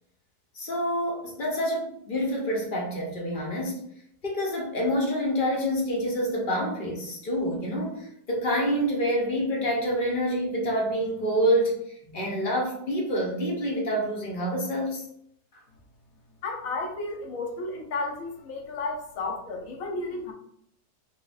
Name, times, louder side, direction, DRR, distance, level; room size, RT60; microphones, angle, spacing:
voice 1, 0.5-3.8 4.2-11.8 12.1-15.0, equal, 40° left, -1 dB, 0.9 m, -27 dB
voice 2, 16.4-20.3, left 3 dB, 65° left, 2 dB, 1.1 m, -33 dB
4.0 x 3.1 x 2.4 m, 0.70 s
omnidirectional pair, 1.6 m